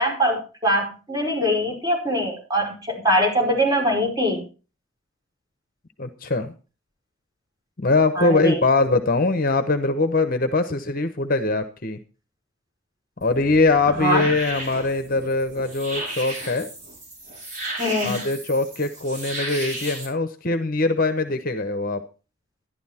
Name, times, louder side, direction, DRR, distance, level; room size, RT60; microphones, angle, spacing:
voice 1, 0.0-4.4 8.2-8.6 14.0-14.3 17.8-18.2, equal, 20° right, -1 dB, 5.2 m, -22 dB
voice 2, 6.0-6.5 7.8-12.0 13.2-16.7 18.0-22.0, left 3 dB, 45° left, 9 dB, 1.0 m, -22 dB
sound 1, 13.2-20.1, right 1 dB, 40° right, 5.9 m, -34 dB
12.0 x 11.5 x 4.3 m, 0.34 s
head